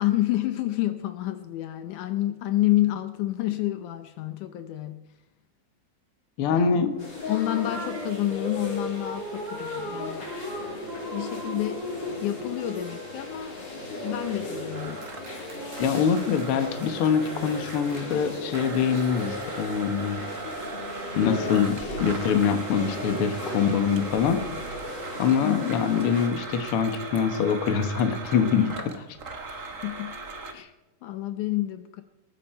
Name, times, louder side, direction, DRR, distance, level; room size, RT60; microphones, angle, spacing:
voice 1, 0.0-5.0 6.5-6.9 7.3-10.3 11.1-11.8 12.2-13.6 14.0-15.0 25.4-25.7 29.8-30.1 30.5-30.7 31.0-32.0, left 15 dB, 75° left, 9 dB, 2.2 m, -28 dB
voice 2, 6.4-7.0 15.8-20.2 21.1-24.4 25.2-29.0, left 7 dB, 55° left, 8 dB, 1.8 m, -24 dB
sound 1, 6.9-20.4, left 1 dB, 90° right, 7.3 m, -39 dB
sound 2, 7.0-26.3, left 1 dB, 30° left, 4.3 m, -37 dB
Domestic sounds home sounds, 14.7-18.1 18.5-30.5, right 3 dB, 55° right, 0.8 m, -39 dB
20.5 x 14.0 x 4.5 m, 1.0 s
omnidirectional pair, 3.8 m